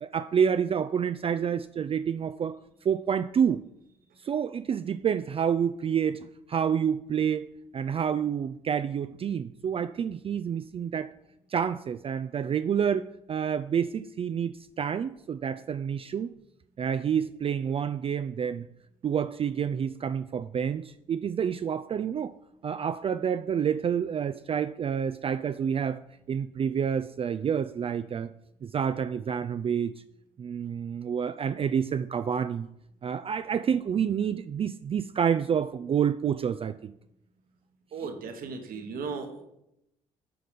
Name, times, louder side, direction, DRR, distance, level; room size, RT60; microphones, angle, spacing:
voice 1, 0.0-2.6 2.8-3.6 4.2-7.5 7.7-11.1 11.5-16.3 16.8-18.7 19.0-22.3 22.6-26.0 26.3-28.3 28.6-29.9 30.4-32.7 33.0-36.9, right 7 dB, 35° right, 11 dB, 0.4 m, -28 dB
voice 2, 37.9-39.5, right 5 dB, 65° right, 5 dB, 1.4 m, -36 dB
7.8 x 4.9 x 5.2 m, 0.81 s
hypercardioid pair, 55°, 16 cm